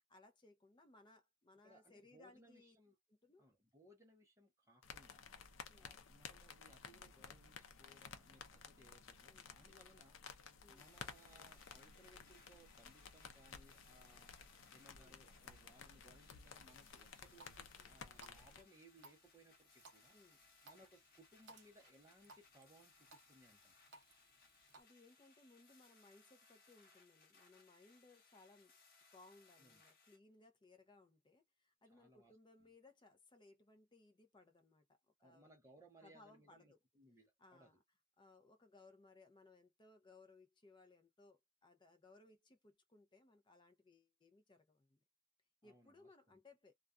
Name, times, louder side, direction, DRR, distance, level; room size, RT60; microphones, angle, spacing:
voice 1, 0.1-2.8 3.1-3.5 5.7-5.9 9.3-9.5 10.6-10.9 14.9-15.3 17.8-18.0 20.1-20.5 24.5-28.7 29.1-34.9 35.2-35.5 36.0-36.8 37.4-37.8 38.2-45.0 45.6-46.7, left 2 dB, 25° left, 0.5 m, -65 dB
voice 2, 1.6-2.9 3.4-14.3 14.7-20.2 20.6-23.8 29.6-29.8 31.9-32.3 32.6-32.7 35.2-37.7 45.6-46.4, right 1 dB, 15° right, 0.7 m, -66 dB
sound 1, 4.8-18.6, left 6 dB, 70° left, 0.5 m, -56 dB
sound 2, 10.8-30.2, left 4 dB, 50° left, 1.0 m, -69 dB
Water tap faucet, 16.7-24.8, right 3 dB, 55° right, 0.7 m, -65 dB
2.3 x 2.3 x 2.4 m
head